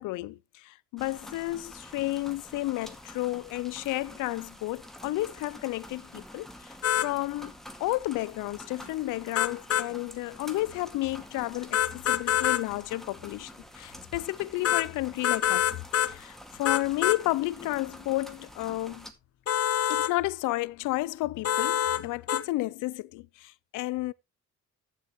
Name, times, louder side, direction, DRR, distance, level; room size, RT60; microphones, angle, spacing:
voice 1, 0.0-6.7 7.0-7.5 7.8-15.7 16.1-19.1 19.9-24.1, left 18 dB, 90° left, 0.5 m, -32 dB
sound 1, 1.0-19.1, left 1 dB, ahead, 2.0 m, -48 dB
sound 2, 6.8-7.1 9.3-9.9 11.7-12.6 14.6-14.9 15.2-16.1 16.6-17.2 19.5-20.1 21.4-22.0 22.3-22.4, left 11 dB, 50° left, 0.8 m, -25 dB
12.0 x 9.3 x 3.0 m
cardioid pair, 90°, 30 cm